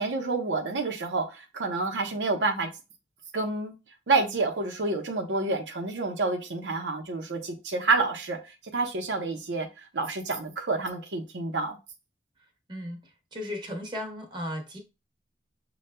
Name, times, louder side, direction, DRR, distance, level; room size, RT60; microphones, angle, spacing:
voice 1, 0.0-2.7 3.3-3.7 4.1-8.4 8.7-9.7 9.9-11.8, right 3 dB, 85° right, 0.8 m, -28 dB
voice 2, 12.7-13.0 13.3-14.8, left 1 dB, 25° right, 0.9 m, -35 dB
6.5 x 2.3 x 2.2 m
head